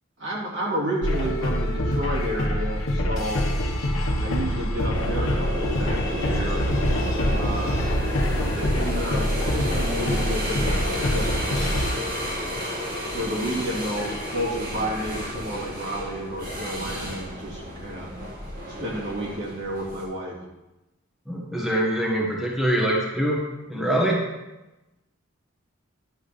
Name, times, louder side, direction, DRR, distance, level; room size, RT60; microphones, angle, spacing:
voice 1, 0.2-3.5 4.2-6.6 7.2-7.8 8.4-11.8 13.1-18.1 18.7-20.4, equal, 65° right, -5 dB, 2.5 m, -31 dB
sound 1, 1.0-11.9, equal, 80° left, 1.1 m, -25 dB
sound 2, 4.9-20.0, left 1 dB, 45° right, 2.5 m, -32 dB
voice 2, 21.3-23.4 23.7-24.2, right 1 dB, ahead, -4 dB, 1.3 m, -24 dB
10.5 x 3.8 x 6.8 m, 1.0 s
head